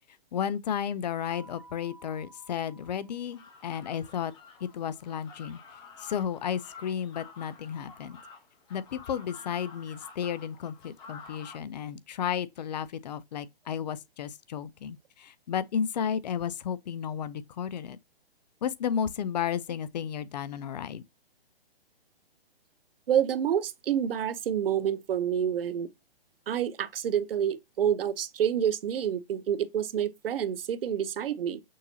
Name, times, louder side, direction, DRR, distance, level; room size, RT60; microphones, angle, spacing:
voice 1, 0.3-4.3 4.6-5.6 6.0-8.2 8.7-18.0 18.6-21.0, left 8 dB, 45° left, 0.5 m, -33 dB
sound 1, 1.3-4.0, right 2 dB, ahead, 0.6 m, -53 dB
sound 2, 3.3-11.6, left 5 dB, 15° left, 1.0 m, -50 dB
voice 2, 23.1-25.9 26.5-31.6, right 9 dB, 65° right, 0.7 m, -28 dB
6.4 x 2.6 x 2.7 m
hypercardioid pair, 145°, 30 cm